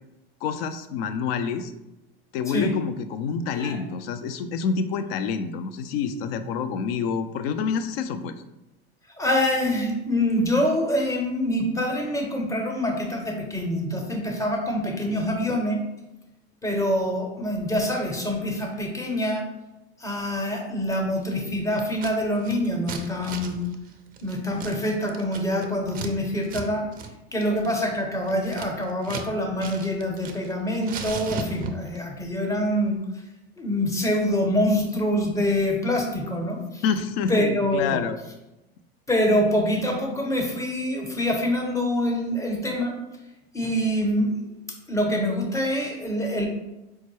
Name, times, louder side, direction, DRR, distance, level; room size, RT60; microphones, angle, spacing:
voice 1, 0.4-1.7 2.3-8.4 36.8-38.2 39.3-39.4, left 6 dB, 70° left, 10 dB, 0.4 m, -27 dB
voice 2, 9.2-15.8 16.6-19.5 20.0-23.6 24.2-26.9 27.3-33.0 33.6-36.8 37.3-38.0 39.1-42.9 43.5-44.3 44.9-46.5, left 1 dB, 10° left, 2 dB, 0.6 m, -25 dB
Scissors, 21.8-22.1 22.4-26.1 26.4-26.7 26.9-27.1 27.4-29.3 29.6-30.5 30.8-32.0, right 4 dB, 30° right, 0.4 m, -36 dB
4.5 x 2.1 x 3.0 m, 0.96 s
hypercardioid pair, 105°, 31 cm